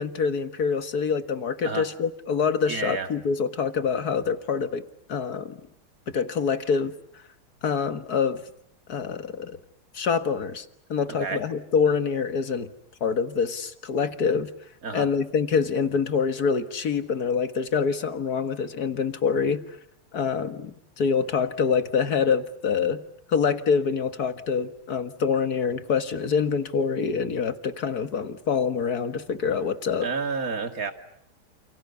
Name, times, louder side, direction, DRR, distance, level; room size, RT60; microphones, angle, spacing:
voice 1, 0.0-4.8 5.1-5.6 6.1-6.9 7.6-8.4 8.9-9.6 9.9-12.7 13.0-14.5 14.9-19.6 20.1-23.0 23.3-30.1, left 6 dB, 50° left, 10 dB, 2.0 m, -25 dB
voice 2, 2.7-3.1 11.1-11.4 14.8-15.1 30.0-30.9, right 5 dB, 40° right, 7 dB, 2.6 m, -30 dB
29.5 x 28.5 x 7.0 m, 0.72 s
omnidirectional pair, 2.3 m